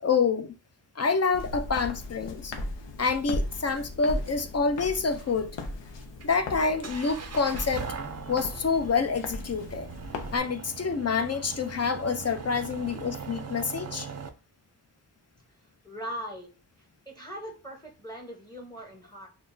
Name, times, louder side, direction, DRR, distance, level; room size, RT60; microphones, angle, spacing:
voice 1, 0.0-0.5 1.0-2.5 3.0-5.5 6.2-7.9 8.3-9.9 10.3-14.1, left 5 dB, 40° left, 0.5 m, -27 dB
Walk footsteps, 1.3-10.4, left 2 dB, 85° left, 0.6 m, -37 dB
sound 1, 5.2-14.3, right 6 dB, 40° right, 0.4 m, -41 dB
voice 2, 15.8-16.5 17.1-19.3, equal, 10° left, 0.9 m, -40 dB
6.0 x 2.1 x 2.6 m
wide cardioid pair, 60°, 42 cm